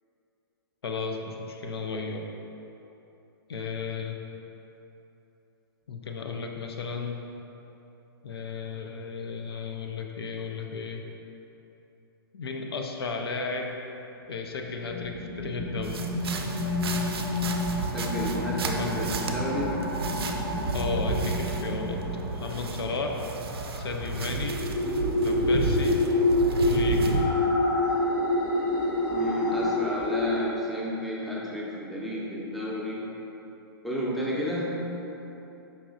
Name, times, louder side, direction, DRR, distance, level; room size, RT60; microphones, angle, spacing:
voice 1, 0.8-2.3 3.5-4.2 5.9-7.2 8.2-11.1 12.3-13.8 14.3-16.1 18.8-19.1 20.7-22.0 22.3-23.2 23.7-24.7 25.2-26.0 26.6-27.1, left 4 dB, 75° left, 2 dB, 0.4 m, -34 dB
sound 1, 14.7-30.5, left 1 dB, 45° left, 0.8 m, -28 dB
sound 2, 15.8-27.3, right 3 dB, 75° right, 0.4 m, -32 dB
voice 2, 17.9-20.0 29.1-33.2 33.8-34.8, left 1 dB, ahead, -6 dB, 0.6 m, -32 dB
5.2 x 3.0 x 2.4 m, 3.0 s
hypercardioid pair, 120°, 13 cm